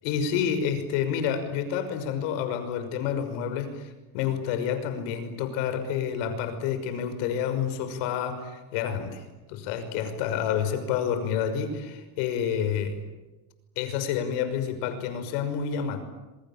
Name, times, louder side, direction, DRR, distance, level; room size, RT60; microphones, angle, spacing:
voice 1, 0.0-13.0 13.8-16.0, left 8 dB, 75° left, 9 dB, 6.0 m, -29 dB
27.0 x 24.0 x 8.9 m, 1.1 s
supercardioid pair, 115°, 46 cm